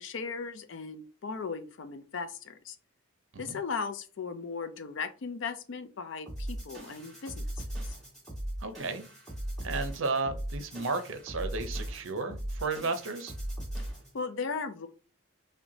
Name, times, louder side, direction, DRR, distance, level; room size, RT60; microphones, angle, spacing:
voice 1, 0.0-2.8 3.4-8.0 14.1-14.9, left 5 dB, 60° left, 0.4 m, -37 dB
sound 1, 6.3-14.2, right 1 dB, ahead, 1.7 m, -38 dB
voice 2, 8.6-9.1 9.6-13.3, right 3 dB, 70° right, 0.6 m, -33 dB
5.7 x 2.2 x 2.7 m
head